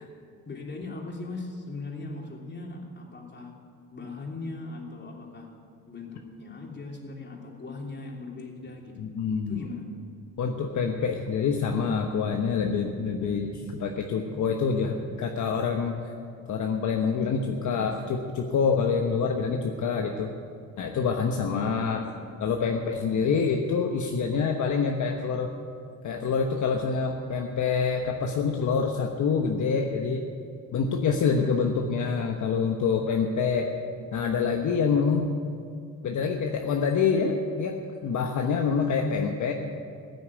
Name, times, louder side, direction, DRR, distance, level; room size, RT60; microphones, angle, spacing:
voice 1, 0.4-3.5 3.9-5.5 5.9-9.0 9.5-9.9 19.2-19.6 21.6-22.1 31.2-31.6 38.6-38.9, left 3 dB, 30° left, 0 dB, 3.2 m, -39 dB
voice 2, 9.0-9.7 10.4-15.9 16.5-20.3 20.8-22.0 22.4-25.5 26.0-30.2 30.7-33.7 34.1-35.3 36.0-39.5, left 5 dB, 60° left, 2 dB, 1.2 m, -26 dB
15.5 x 9.5 x 8.5 m, 2.3 s
cardioid pair, 90°, 34 cm